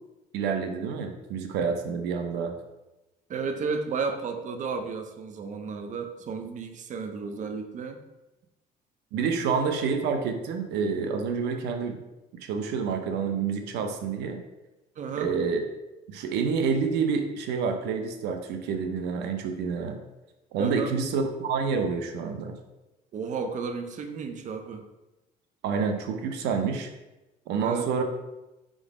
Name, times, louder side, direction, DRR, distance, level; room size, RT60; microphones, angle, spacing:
voice 1, 0.3-2.5 9.1-12.0 12.4-14.4 15.2-15.6 16.1-20.0 20.5-22.6 25.6-26.9 27.5-28.0, right 5 dB, 90° right, 5 dB, 0.7 m, -28 dB
voice 2, 3.3-8.0 15.0-15.3 20.6-20.9 23.1-24.8 27.6-27.9, right 5 dB, 45° right, 6 dB, 0.7 m, -33 dB
5.1 x 3.8 x 4.9 m, 1.0 s
cardioid pair, 110°, 17 cm